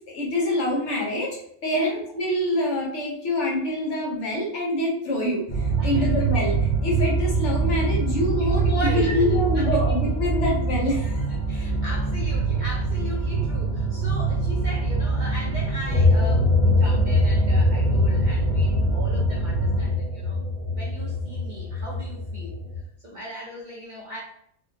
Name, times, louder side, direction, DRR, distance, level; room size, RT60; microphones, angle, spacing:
voice 1, 0.1-11.3, left 1 dB, 65° left, -1 dB, 1.1 m, -26 dB
sound 1, 5.5-19.9, right 4 dB, 35° left, 0.6 m, -24 dB
voice 2, 5.8-6.1 8.3-9.7 11.2-20.4 20.7-22.5 23.0-24.2, equal, 50° right, -5 dB, 0.6 m, -37 dB
sound 2, 15.9-22.8, left 3 dB, 75° right, 1.1 m, -23 dB
3.5 x 2.2 x 2.6 m, 0.69 s
omnidirectional pair, 1.3 m